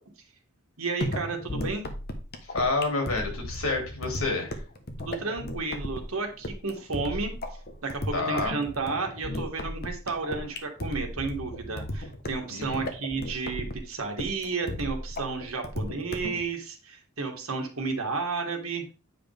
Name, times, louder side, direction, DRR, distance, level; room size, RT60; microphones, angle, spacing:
voice 1, 0.8-1.8 5.0-7.3 7.8-18.9, right 4 dB, 80° right, 3 dB, 1.7 m, -32 dB
sound 1, 1.0-16.4, left 1 dB, 45° left, 1.1 m, -35 dB
voice 2, 2.5-4.6 8.1-8.6 12.5-12.9, left 3 dB, 80° left, 2 dB, 2.8 m, -28 dB
8.8 x 5.1 x 3.5 m, 0.33 s
head